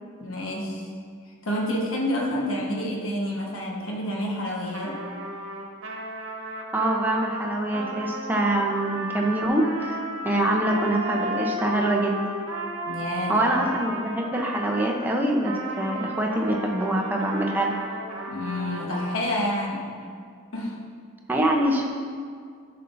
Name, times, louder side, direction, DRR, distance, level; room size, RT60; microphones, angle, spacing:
voice 1, 0.2-0.9 1.2-5.0 12.9-13.7 18.3-19.9 20.5-20.9, left 1 dB, 75° left, -2 dB, 1.2 m, -29 dB
Trumpet, 4.7-14.9 15.4-19.2, right 1 dB, 80° right, 1.0 m, -34 dB
voice 2, 6.7-12.3 13.3-17.8 21.3-21.9, right 1 dB, 10° right, -1 dB, 0.7 m, -24 dB
10.5 x 5.6 x 2.6 m, 2.1 s
head